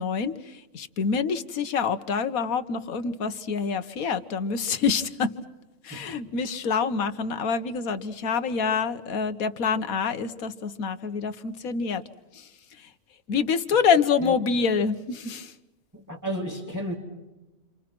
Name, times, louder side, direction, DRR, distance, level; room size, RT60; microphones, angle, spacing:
voice 1, 0.0-5.3 5.8-12.0 12.3-12.5 13.3-15.5, left 5 dB, 70° left, 10 dB, 1.6 m, -26 dB
voice 2, 15.9-17.0, equal, 10° right, -2 dB, 2.6 m, -32 dB
29.5 x 26.5 x 6.1 m, 1.1 s
omnidirectional pair, 1.5 m